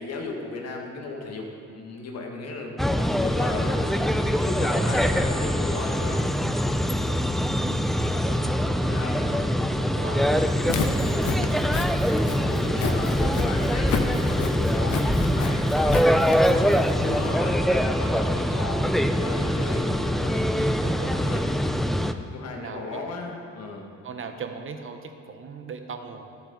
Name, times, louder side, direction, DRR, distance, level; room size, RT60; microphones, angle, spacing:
voice 1, 0.0-2.9 3.2-3.9 4.4-6.3 8.8-9.2 10.1-10.4 12.4-20.6 21.2-21.5 22.3-23.9, left 3 dB, 55° left, 1 dB, 1.4 m, -35 dB
sound 1, 2.8-22.1, equal, ahead, 0.3 m, -23 dB
voice 2, 4.6-5.0 7.0-9.5 9.8-11.6 12.4-13.4 18.0-18.2 20.5-21.4 22.5-23.1 24.0-26.3, right 5 dB, 45° right, 6 dB, 0.8 m, -39 dB
Walk footsteps, 10.5-17.3, left 5 dB, 75° left, 0.9 m, -32 dB
13.0 x 7.3 x 3.9 m, 2.4 s
cardioid pair, 90°, 30 cm